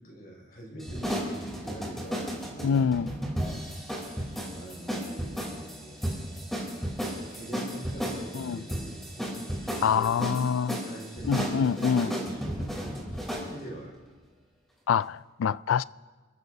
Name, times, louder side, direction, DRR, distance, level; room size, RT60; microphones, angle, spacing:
voice 1, 0.0-4.0 4.5-6.0 7.3-10.2 10.8-14.0, right 1 dB, 45° left, 5.5 m, -44 dB
sound 1, 0.8-13.5, equal, ahead, 3.2 m, -34 dB
voice 2, 2.6-3.1 8.3-8.6 9.8-10.8 11.2-12.1 14.9-15.8, left 7 dB, 75° left, 0.3 m, -25 dB
28.5 x 14.5 x 2.7 m
head